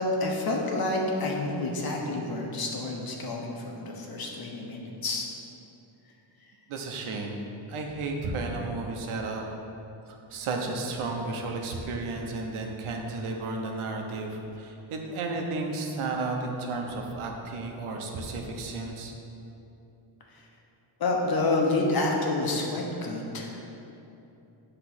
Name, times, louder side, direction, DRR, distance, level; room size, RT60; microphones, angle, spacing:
voice 1, 0.0-5.3 21.0-23.7, left 2 dB, 45° left, 0 dB, 1.1 m, -28 dB
voice 2, 6.7-9.5 10.3-19.1, right 3 dB, 80° right, 1 dB, 1.0 m, -33 dB
7.9 x 3.3 x 6.0 m, 2.9 s
cardioid pair, 120°, 49 cm